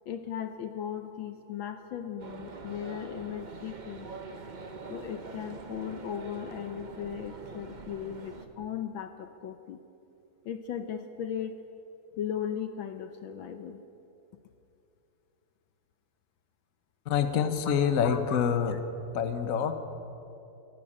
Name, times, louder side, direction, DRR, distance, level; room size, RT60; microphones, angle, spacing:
voice 1, 0.1-4.1 4.9-9.8 10.4-11.6 12.2-13.8 17.6-17.8 18.0-18.4, left 9 dB, 70° left, 9 dB, 1.5 m, -37 dB
sound 1, 2.2-8.5, right 4 dB, 35° right, 0.8 m, -44 dB
voice 2, 17.1-18.8 19.1-19.7, left 7 dB, 45° left, 8 dB, 1.3 m, -26 dB
27.0 x 11.5 x 8.8 m, 2.8 s
omnidirectional pair, 2.4 m